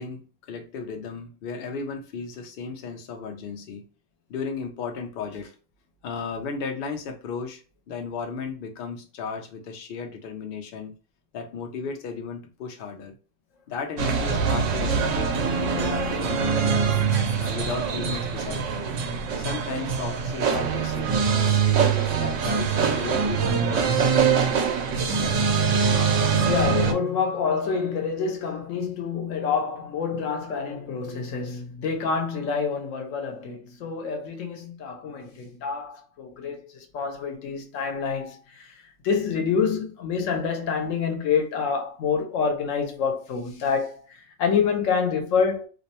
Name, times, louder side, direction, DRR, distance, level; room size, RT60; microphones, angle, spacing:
voice 1, 0.0-3.8 4.3-5.5 6.0-7.6 7.9-10.9 11.3-13.1 13.7-16.9 17.4-18.9 19.4-21.9 22.2-24.5, left 5 dB, 60° left, 0.7 m, -35 dB
sound 1, 14.0-26.9, right 6 dB, 80° right, 0.9 m, -23 dB
voice 2, 26.5-45.7, left 6 dB, 85° left, 1.0 m, -27 dB
2.5 x 2.1 x 2.7 m
omnidirectional pair, 1.3 m